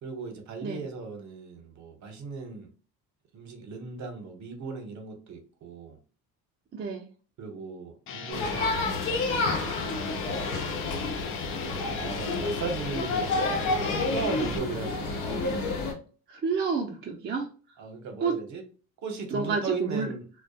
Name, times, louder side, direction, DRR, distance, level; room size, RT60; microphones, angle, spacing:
voice 1, 0.0-2.7 3.3-6.0 7.4-8.8 9.2-10.9 11.7-15.6 17.8-18.6 19.0-20.2, right 4 dB, 50° right, 5 dB, 0.8 m, -37 dB
voice 2, 6.7-7.1 16.3-17.5 18.2-18.4 19.3-20.1, right 5 dB, 30° right, 0 dB, 0.5 m, -29 dB
sound 1, 8.1-14.6, left 7 dB, 35° left, 0.4 m, -39 dB
sound 2, 8.3-15.9, left 3 dB, 85° left, 0.8 m, -29 dB
2.3 x 2.2 x 2.6 m, 0.37 s
supercardioid pair, 85°, 37 cm